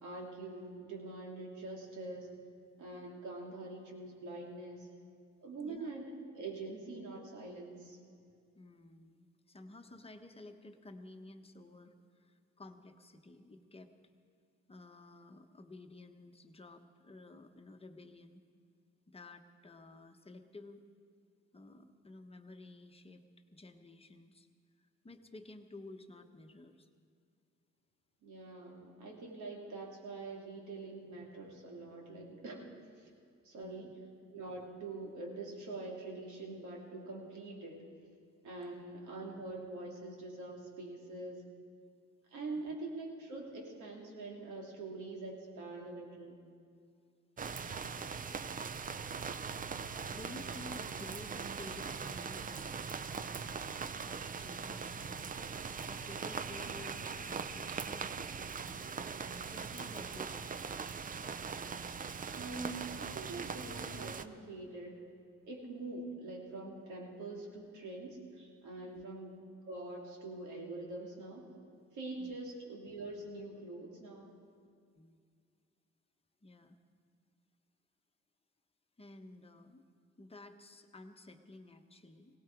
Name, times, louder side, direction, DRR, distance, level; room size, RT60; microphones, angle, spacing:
voice 1, 0.0-2.3 2.8-4.9 5.4-8.0 28.2-32.7 33.0-33.1 33.4-33.9 34.3-37.8 38.4-41.4 42.3-46.4 56.6-56.7 62.3-65.0 65.5-69.3 69.7-71.5 71.9-74.3, right 2 dB, 75° right, -1 dB, 2.9 m, -44 dB
voice 2, 8.5-13.9 14.7-18.4 19.1-20.8 21.5-23.2 23.5-24.5 24.8-26.9 33.6-33.9 38.7-38.8 42.5-42.7 47.5-48.5 50.1-52.8 53.4-55.3 55.8-60.5 68.9-69.0 72.2-72.3 75.0-75.2 76.4-76.8 79.0-79.8 80.2-82.4, left 2 dB, 20° left, 6 dB, 1.1 m, -53 dB
sound 1, 47.4-64.3, right 5 dB, 30° right, 0.5 m, -41 dB
18.0 x 17.5 x 4.6 m, 2.2 s
cardioid pair, 90°, 30 cm